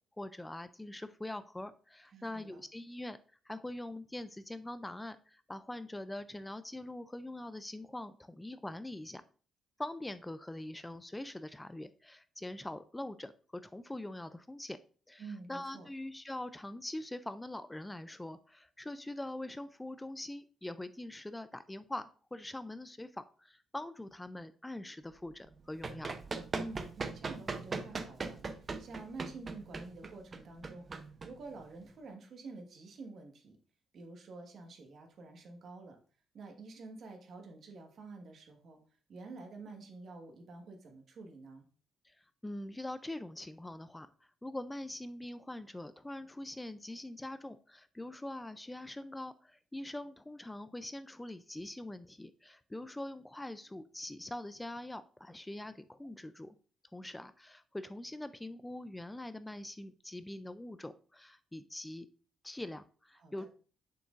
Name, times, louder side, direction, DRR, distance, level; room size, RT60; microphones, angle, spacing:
voice 1, 0.2-3.2 3.5-9.2 9.8-13.3 13.6-14.8 15.1-26.2 42.0-44.1 44.4-56.6 56.9-62.1 62.4-63.4, left 1 dB, 10° left, 12 dB, 0.3 m, -43 dB
voice 2, 2.1-2.6 15.2-15.9 26.5-33.6 33.9-36.0 36.3-38.8 39.1-41.6 63.2-63.5, right 3 dB, 60° right, 4 dB, 1.4 m, -49 dB
Run, 25.5-31.9, right 4 dB, 35° right, 0.6 m, -40 dB
6.8 x 6.1 x 2.5 m, 0.40 s
cardioid pair, 90°, 0 cm